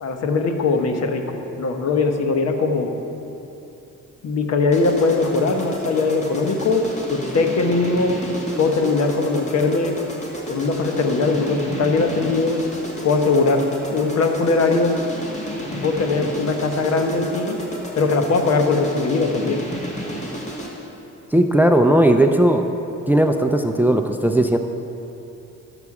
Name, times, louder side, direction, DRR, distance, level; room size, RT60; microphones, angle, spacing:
voice 1, 0.0-2.9 4.2-6.8 7.1-8.2 8.6-9.9 10.5-12.6 13.0-15.0 15.7-17.6 17.9-19.6, left 3 dB, 60° left, 5 dB, 1.1 m, -20 dB
sound 1, 4.7-20.9, equal, 25° left, 1.8 m, -32 dB
voice 2, 21.3-22.7 23.1-24.6, right 1 dB, 5° right, 6 dB, 0.4 m, -17 dB
12.0 x 7.0 x 4.8 m, 2.9 s
cardioid pair, 90°, 30 cm